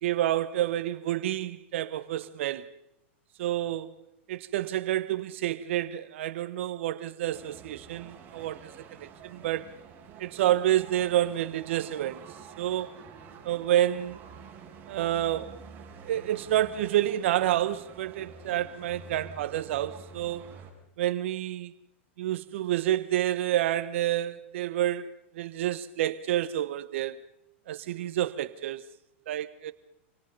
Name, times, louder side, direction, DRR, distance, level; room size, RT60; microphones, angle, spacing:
voice 1, 0.0-2.7 3.4-3.9 4.3-8.7 9.0-9.7 10.2-12.2 12.6-12.9 13.4-14.2 14.9-15.6 16.0-20.4 21.0-21.7 22.2-25.1 25.3-27.2 27.7-28.8 29.3-29.7, right 13 dB, 70° right, 1.1 m, -29 dB
sound 1, 7.3-20.7, right 5 dB, 30° right, 6.5 m, -48 dB
26.0 x 18.5 x 5.4 m
hypercardioid pair, 120°, 7 cm